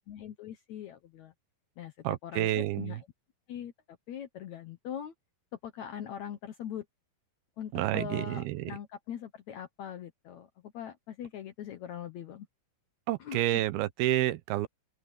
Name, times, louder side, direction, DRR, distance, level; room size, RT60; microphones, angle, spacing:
voice 1, 0.1-1.3 1.8-1.9 2.2-3.1 3.5-3.7 4.1-5.1 5.6-6.9 7.6-12.5 13.2-13.6, left 9 dB, 70° left, 1.8 m, -41 dB
voice 2, 2.0-3.0 7.7-8.7 13.1-14.7, right 15 dB, 80° right, 2.8 m, -29 dB
open air
omnidirectional pair, 4.4 m